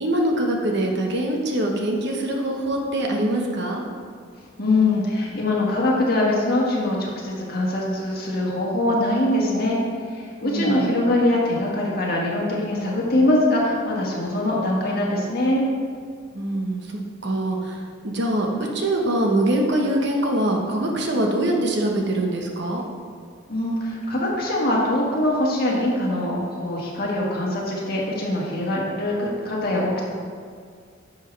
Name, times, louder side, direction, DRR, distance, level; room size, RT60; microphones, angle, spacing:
voice 1, 0.0-3.8 10.4-11.1 16.3-17.8 18.0-22.8, right 1 dB, 60° right, 1 dB, 1.1 m, -23 dB
voice 2, 4.6-15.7 23.5-30.0, left 1 dB, 50° left, -4 dB, 1.8 m, -23 dB
10.5 x 6.4 x 3.3 m, 2.1 s
head